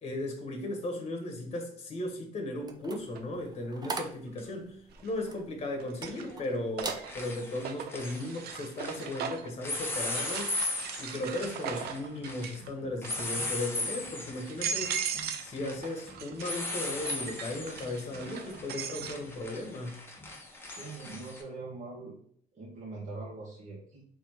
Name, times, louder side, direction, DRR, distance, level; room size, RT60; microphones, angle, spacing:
voice 1, 0.0-4.8 5.0-10.5 11.0-15.0 15.4-20.0, left 1 dB, 35° left, 3 dB, 1.3 m, -36 dB
sound 1, 2.6-6.4 6.8-7.1 7.6-7.8, right 4 dB, 25° right, 0.6 m, -40 dB
sound 2, 3.1-3.2 4.9-5.4 5.8-9.6 10.1-12.7 13.0-13.5 14.0-14.1 14.5-15.5 15.8-19.2, right 7 dB, 70° right, 0.6 m, -38 dB
sound 3, 4.4-4.5 6.2-6.5 6.8-9.2 9.6-21.4, left 2 dB, 15° left, 1.0 m, -38 dB
voice 2, 20.7-22.2 22.5-24.1, right 3 dB, 50° right, -7 dB, 1.8 m, -42 dB
4.3 x 3.5 x 3.4 m, 0.63 s
cardioid pair, 110°, 17 cm